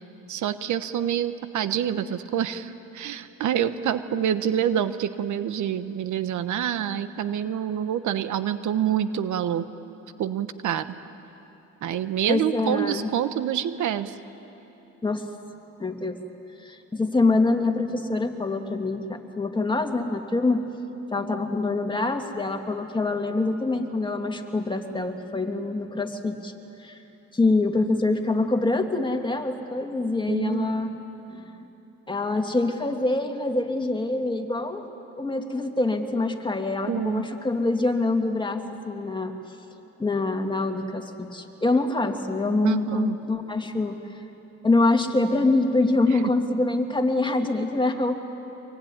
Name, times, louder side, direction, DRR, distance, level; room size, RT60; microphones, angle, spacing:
voice 1, 0.3-9.7 10.2-10.9 11.8-14.2 30.3-30.7 36.9-37.2 42.6-43.2 46.1-46.2, right 9 dB, 75° right, 12 dB, 1.1 m, -27 dB
voice 2, 12.3-13.1 15.0-15.2 15.8-16.2 16.6-20.7 21.1-26.5 26.8-27.0 27.3-30.9 31.3-31.5 32.1-34.8 35.2-39.3 40.0-44.0 44.6-48.1, left 2 dB, 15° left, 4 dB, 2.4 m, -25 dB
24.5 x 23.0 x 10.0 m, 3.0 s
cardioid pair, 90°, 30 cm